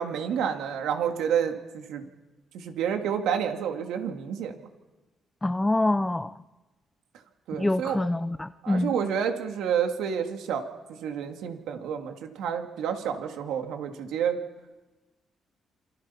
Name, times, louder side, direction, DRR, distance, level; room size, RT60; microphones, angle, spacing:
voice 1, 0.0-2.0 2.5-4.5 7.5-8.0 8.6-10.6 10.9-14.4, right 8 dB, 85° right, 2.5 m, -29 dB
voice 2, 5.4-6.3 7.6-8.9, left 2 dB, 15° left, 0.7 m, -26 dB
27.5 x 25.0 x 5.9 m
cardioid pair, 90°, 0 cm